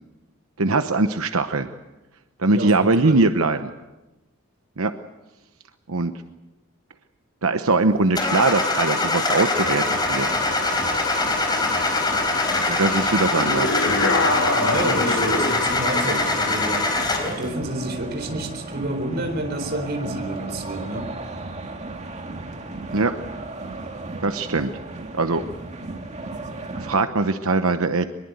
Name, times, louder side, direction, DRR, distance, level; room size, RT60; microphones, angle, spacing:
voice 1, 0.6-1.7 2.4-3.7 4.8-4.9 5.9-6.1 7.4-10.3 12.7-13.8 22.9-23.1 24.2-24.7 25.1-25.4 26.7-28.1, right 3 dB, 85° right, 8 dB, 1.0 m, -21 dB
voice 2, 2.5-3.2 14.6-16.9 17.2-21.1, right 1 dB, 50° right, 6 dB, 4.2 m, -29 dB
Car / Engine starting, 8.2-17.4, left 3 dB, 20° left, 4.4 m, -23 dB
sound 1, 9.5-27.0, right 2 dB, 35° right, 2.4 m, -35 dB
sound 2, 13.4-15.7, left 2 dB, 70° left, 2.6 m, -24 dB
23.5 x 22.0 x 8.1 m, 1.1 s
head